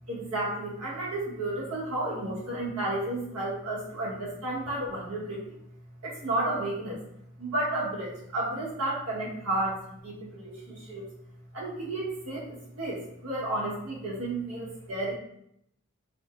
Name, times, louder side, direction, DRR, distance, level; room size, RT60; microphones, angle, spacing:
voice 1, 0.1-5.5 6.0-7.0 7.4-11.1 11.5-15.1, right 2 dB, 80° right, -6 dB, 1.3 m, -32 dB
4.8 x 2.2 x 2.5 m, 0.75 s
head